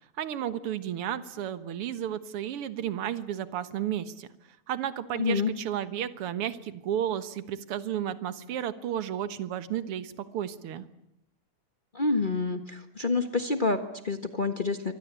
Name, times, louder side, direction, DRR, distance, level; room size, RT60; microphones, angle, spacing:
voice 1, 0.2-4.3 4.7-10.8, right 10 dB, 55° right, 12 dB, 2.0 m, -33 dB
voice 2, 5.1-5.5 11.9-14.9, left 3 dB, 60° left, 7 dB, 0.5 m, -28 dB
27.0 x 24.5 x 8.3 m, 0.80 s
omnidirectional pair, 3.4 m